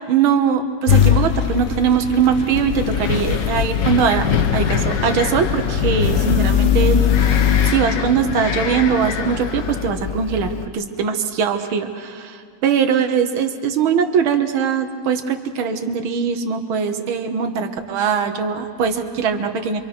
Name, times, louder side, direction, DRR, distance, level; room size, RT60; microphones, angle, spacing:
voice 1, 0.1-4.3 4.5-19.8, right 7 dB, 85° right, 6 dB, 2.0 m, -21 dB
sound 1, 0.9-7.7, left 9 dB, 45° left, 1.1 m, -20 dB
Wind, 2.5-10.7, left 8 dB, 65° left, 1.6 m, -24 dB
27.0 x 24.0 x 6.1 m, 2.1 s
omnidirectional pair, 2.2 m